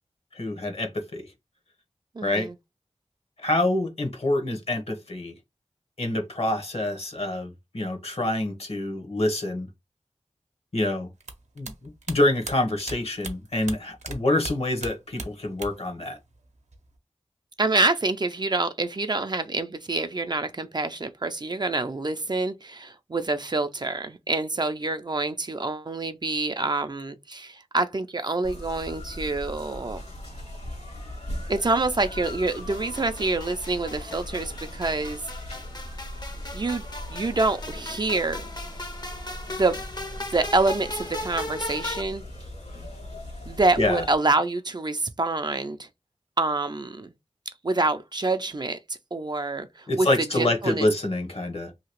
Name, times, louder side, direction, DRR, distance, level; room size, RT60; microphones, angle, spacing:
voice 1, 0.3-1.3 2.2-2.5 3.4-5.3 6.0-9.7 10.7-11.1 11.6-16.2 43.8-44.1 49.9-51.7, left 1 dB, 60° left, 1.0 m, -26 dB
voice 2, 2.2-2.5 17.6-30.0 31.5-35.2 36.5-36.8 37.1-38.5 39.5-39.8 40.3-42.2 43.5-45.9 46.4-47.1 47.6-48.8 49.1-50.1 50.3-50.9, right 3 dB, 40° right, 0.4 m, -26 dB
sound 1, 11.2-14.2 14.4-15.9 16.2-17.0, right 3 dB, 80° right, 0.7 m, -37 dB
sound 2, 28.4-44.2, left 1 dB, 75° left, 1.6 m, -39 dB
sound 3, 32.2-42.0, left 2 dB, 35° left, 0.6 m, -38 dB
2.8 x 2.8 x 3.0 m
wide cardioid pair, 45°, 12 cm